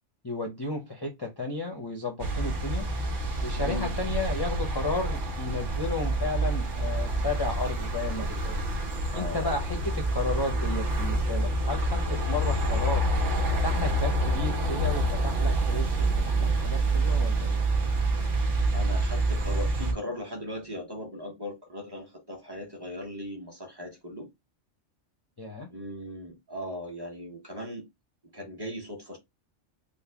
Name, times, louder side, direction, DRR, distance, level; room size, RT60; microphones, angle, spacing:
voice 1, 0.2-2.8 3.4-8.6 9.1-13.0 13.6-17.6 25.4-25.7, left 3 dB, 25° left, 0.6 m, -33 dB
sound 1, 2.2-19.9, right 2 dB, 80° right, 1.3 m, -27 dB
voice 2, 3.6-4.0 9.1-9.6 18.7-24.3 25.7-27.8 28.3-29.2, left 1 dB, 20° right, 1.0 m, -38 dB
3.7 x 2.2 x 3.3 m
omnidirectional pair, 1.2 m